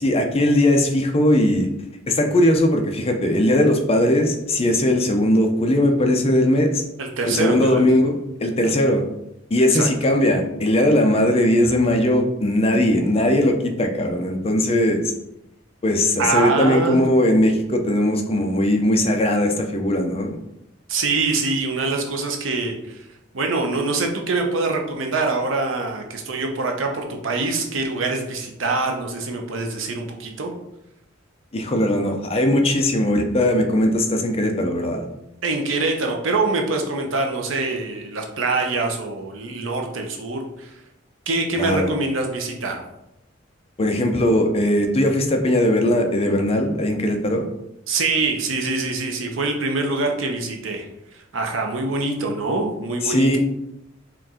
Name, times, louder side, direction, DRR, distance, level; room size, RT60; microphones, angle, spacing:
voice 1, 0.0-1.7 2.1-6.8 7.3-8.1 8.4-9.0 9.5-15.1 15.8-20.4 31.5-35.1 41.6-41.9 43.8-47.5 53.0-53.4, left 1 dB, 30° left, 4 dB, 0.5 m, -19 dB
voice 2, 7.0-7.8 9.6-9.9 16.2-17.0 20.9-23.0 23.3-30.5 35.4-40.7 41.3-42.8 47.9-50.9 51.1-53.4, right 3 dB, 85° right, 2 dB, 0.8 m, -24 dB
4.5 x 2.5 x 3.7 m, 0.85 s
head